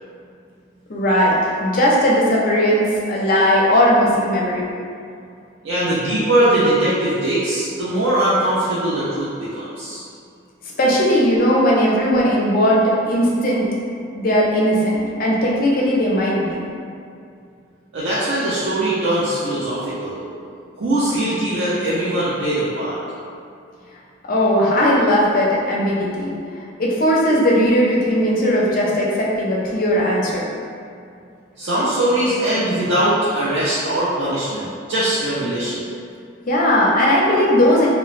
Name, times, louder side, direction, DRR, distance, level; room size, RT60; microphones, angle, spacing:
voice 1, 0.9-4.7 10.8-13.7 14.1-16.6 24.2-26.3 26.8-30.5 36.4-37.9, equal, 45° left, -4 dB, 0.4 m, -17 dB
voice 2, 5.6-10.0 17.9-20.3 20.8-23.0 31.6-35.8, right 1 dB, 70° right, -10 dB, 0.5 m, -21 dB
3.0 x 2.1 x 2.4 m, 2.4 s
head